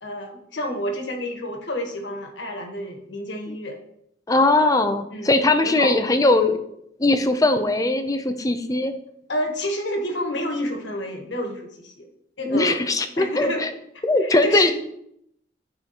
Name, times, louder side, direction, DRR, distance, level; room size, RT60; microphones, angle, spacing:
voice 1, 0.0-3.8 5.1-5.3 5.6-6.0 9.3-12.1 12.4-12.8 13.2-13.6 14.2-14.7, left 1 dB, 65° left, 3 dB, 1.4 m, -29 dB
voice 2, 4.3-6.6 7.0-8.9 12.5-13.7 14.0-14.7, left 2 dB, 20° left, 8 dB, 0.5 m, -20 dB
12.0 x 4.9 x 2.9 m, 0.77 s
head